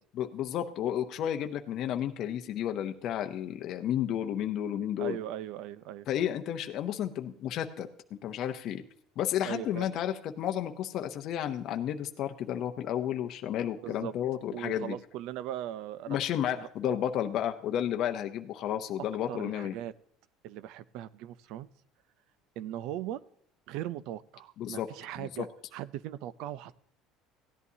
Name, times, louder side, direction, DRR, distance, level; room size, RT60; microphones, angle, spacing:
voice 1, 0.2-5.2 6.1-7.9 8.2-8.8 9.2-14.9 16.1-19.7 24.6-24.9 25.2-25.4, left 10 dB, 45° left, 5 dB, 0.7 m, -32 dB
voice 2, 5.0-6.1 9.5-9.9 13.8-14.1 14.5-16.2 16.6-17.0 19.0-19.9 20.4-21.7 22.6-23.2 23.7-26.7, right 12 dB, 60° right, 18 dB, 0.5 m, -39 dB
17.0 x 11.0 x 2.8 m, 0.67 s
cardioid pair, 170°, 0 cm